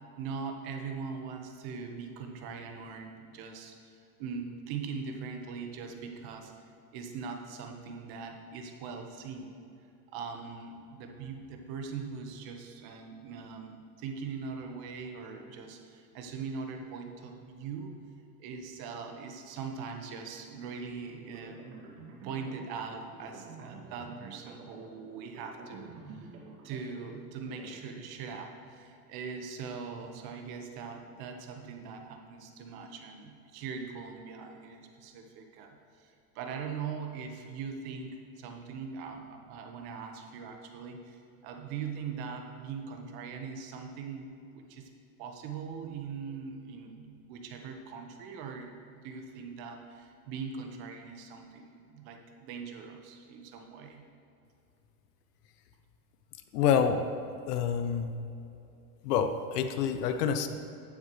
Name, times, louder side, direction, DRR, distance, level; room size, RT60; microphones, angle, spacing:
voice 1, 0.2-6.5 6.9-9.5 10.1-18.0 18.4-21.7 22.2-26.3 26.6-44.9 45.2-54.1, right 5 dB, 55° right, 4 dB, 1.4 m, -41 dB
sound 1, 21.1-27.8, right 4 dB, 80° right, 2.4 m, -50 dB
voice 2, 56.5-57.0 57.5-58.1 59.0-60.5, left 7 dB, 85° left, 8 dB, 0.9 m, -27 dB
12.0 x 8.9 x 3.3 m, 2.7 s
supercardioid pair, 130°, 45 cm